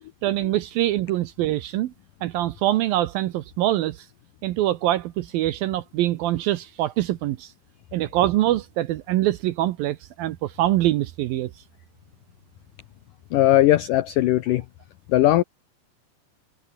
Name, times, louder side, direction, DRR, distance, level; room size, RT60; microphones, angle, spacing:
voice 1, 0.2-1.9 2.2-4.0 4.4-7.5 7.9-11.5, right 14 dB, 75° right, 2.3 m, -24 dB
voice 2, 13.3-14.7 15.1-15.4, left 14 dB, 90° left, 1.8 m, -18 dB
omnidirectional pair, 5.0 m